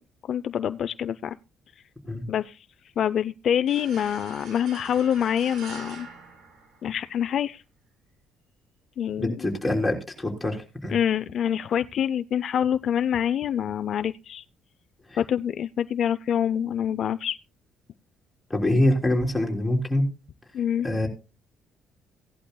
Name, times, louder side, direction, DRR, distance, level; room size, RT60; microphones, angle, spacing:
voice 1, 0.3-1.4 2.3-2.6 3.0-6.1 6.8-7.6 9.0-9.4 10.9-14.4 15.2-17.4 20.5-20.9, left 9 dB, 50° left, 12 dB, 0.5 m, -26 dB
sound 1, 3.7-7.2, right 4 dB, 70° right, 5.1 m, -44 dB
voice 2, 9.2-11.0 15.1-15.2 18.5-20.1 20.8-21.1, left 1 dB, 5° left, 0 dB, 3.5 m, -25 dB
17.0 x 11.5 x 2.2 m, 0.28 s
cardioid pair, 135°, 0 cm